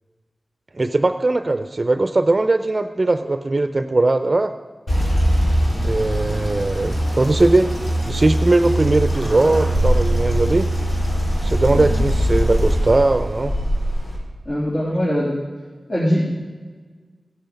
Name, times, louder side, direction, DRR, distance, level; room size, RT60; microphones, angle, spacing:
voice 1, 0.7-4.6 5.8-10.7 11.4-13.5, right 2 dB, 40° right, 8 dB, 0.5 m, -19 dB
sound 1, 4.9-14.2, equal, 65° left, 3.9 m, -21 dB
voice 2, 14.4-15.4 15.9-16.3, equal, 50° left, -7 dB, 3.2 m, -21 dB
16.5 x 8.0 x 5.2 m, 1.5 s
wide cardioid pair, 60°, 0 cm